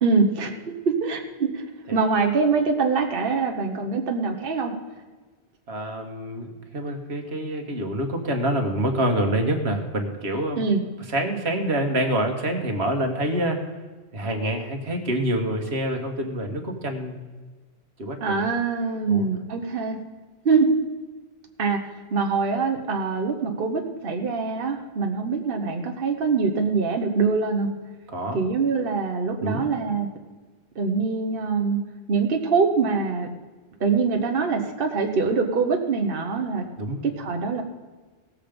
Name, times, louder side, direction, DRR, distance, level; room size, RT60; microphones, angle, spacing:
voice 1, 0.0-1.6 1.9-4.7 10.6-10.8 18.2-20.0 20.4-20.7 21.6-21.8 22.1-27.7 28.3-30.1 30.7-31.8 32.1-33.3 33.8-36.6 37.2-37.6, right 4 dB, 60° right, 3 dB, 1.2 m, -24 dB
voice 2, 5.7-10.6 11.1-13.6 14.1-17.2 18.0-18.5 19.1-19.3 28.1-28.4 29.4-29.7 36.8-37.0, right 1 dB, 80° right, 3 dB, 1.8 m, -26 dB
17.5 x 7.5 x 5.1 m, 1.3 s
omnidirectional pair, 1.1 m